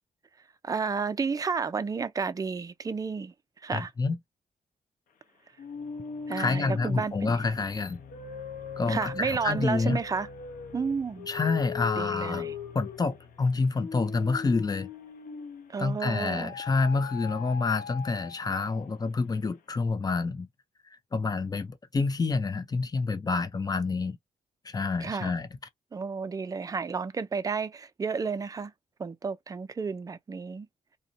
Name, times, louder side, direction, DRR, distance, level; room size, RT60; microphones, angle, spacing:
voice 1, 0.6-3.3 3.6-3.9 6.3-7.5 8.9-10.3 10.7-11.3 11.9-12.5 15.7-16.5 25.0-25.3 25.9-28.7 29.0-30.7, right 5 dB, 25° right, 0.4 m, -31 dB
voice 2, 3.7-4.2 6.4-8.0 8.8-10.0 11.3-12.5 12.7-14.9 15.8-20.5 21.1-24.2 24.7-25.5, left 4 dB, 30° left, 0.6 m, -28 dB
sound 1, 5.6-15.8 16.3-19.1, left 6 dB, 80° left, 0.7 m, -40 dB
2.6 x 2.1 x 2.6 m
cardioid pair, 100°, 14 cm